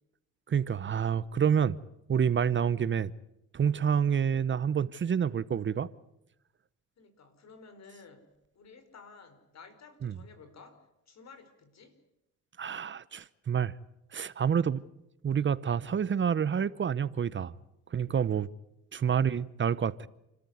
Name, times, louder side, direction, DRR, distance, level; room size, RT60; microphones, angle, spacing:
voice 1, 0.5-1.8 2.1-3.1 3.5-5.9 10.0-10.1 12.6-13.7 14.1-14.8 15.2-17.5 17.9-18.5 18.9-20.1, right 7 dB, 40° right, 0.8 m, -28 dB
voice 2, 7.0-8.3 8.5-12.0 14.7-14.8 17.8-18.1, left 4 dB, 60° left, 4.5 m, -54 dB
29.0 x 14.0 x 9.4 m
cardioid pair, 90°, 30 cm